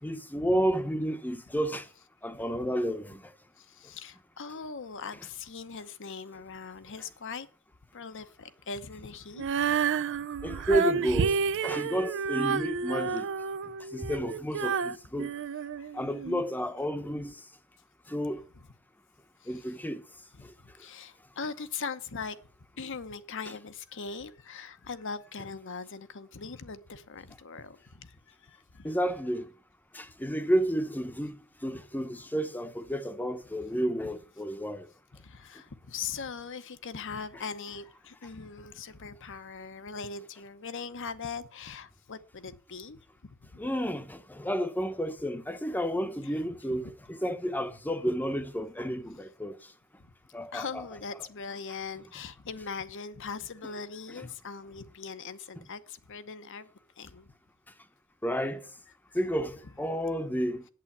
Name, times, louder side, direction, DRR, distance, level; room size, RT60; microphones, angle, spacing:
voice 1, 0.0-1.9 2.2-3.3 10.4-13.3 13.6-15.3 15.9-17.4 18.1-18.4 19.5-20.0 28.8-29.5 29.9-31.4 31.6-34.9 43.6-49.7 50.3-50.8 54.2-54.3 58.2-58.7 59.1-60.6, equal, 10° left, 0.9 m, -31 dB
voice 2, 2.3-2.7 3.6-7.5 7.9-10.0 15.8-15.9 19.4-19.6 20.4-20.5 20.8-22.4 22.8-28.9 35.1-43.6 46.8-46.9 50.0-50.1 50.5-56.7 57.0-57.3 59.1-59.2, left 5 dB, 60° left, 0.9 m, -41 dB
Female singing, 9.4-16.4, right 6 dB, 60° right, 0.4 m, -30 dB
8.6 x 7.7 x 8.6 m
head